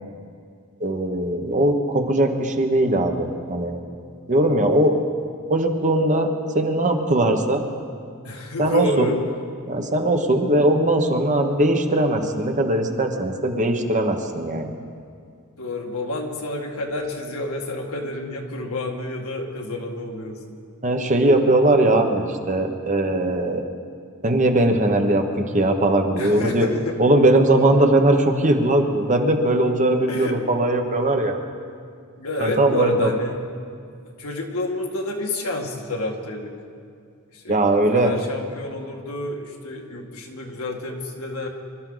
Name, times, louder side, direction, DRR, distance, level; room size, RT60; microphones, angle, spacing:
voice 1, 0.8-3.8 4.3-4.9 5.5-7.6 8.6-9.1 9.7-14.7 20.8-23.6 24.2-26.7 27.0-31.4 32.4-33.1 37.5-38.1, right 1 dB, 35° right, 4 dB, 1.2 m, -20 dB
voice 2, 8.2-9.2 15.6-20.6 26.2-27.0 30.1-30.4 32.2-33.3 34.2-36.6 37.3-41.5, left 2 dB, 75° left, 1 dB, 1.9 m, -29 dB
25.5 x 12.5 x 4.0 m, 2.3 s
head